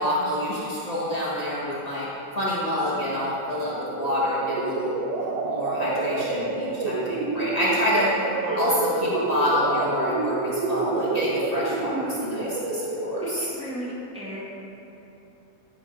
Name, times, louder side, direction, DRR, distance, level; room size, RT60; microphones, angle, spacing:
voice 1, 0.0-2.1 2.3-4.9 5.2-8.1 8.6-13.5, left 1 dB, 60° left, -8 dB, 0.4 m, -27 dB
sound 1, 3.6-13.6, right 3 dB, 70° right, 1.6 m, -28 dB
voice 2, 8.4-8.7 13.2-14.4, equal, 5° right, -8 dB, 1.5 m, -36 dB
11.5 x 7.1 x 5.1 m, 2.9 s
omnidirectional pair, 3.3 m